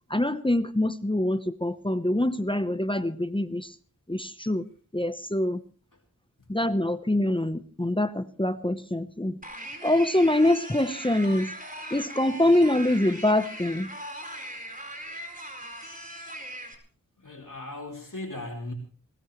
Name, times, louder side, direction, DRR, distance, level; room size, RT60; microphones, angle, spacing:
voice 1, 0.1-3.7 4.1-4.6 4.9-5.6 6.5-9.4 9.8-11.5 11.9-13.9, left 1 dB, 15° left, 11 dB, 0.9 m, -25 dB
sound 1, 9.4-16.7, right 1 dB, 25° right, 4.4 m, -39 dB
voice 2, 17.2-18.7, left 2 dB, 75° left, 0 dB, 3.0 m, -38 dB
20.5 x 19.0 x 3.1 m, 0.38 s
wide cardioid pair, 45°, 32 cm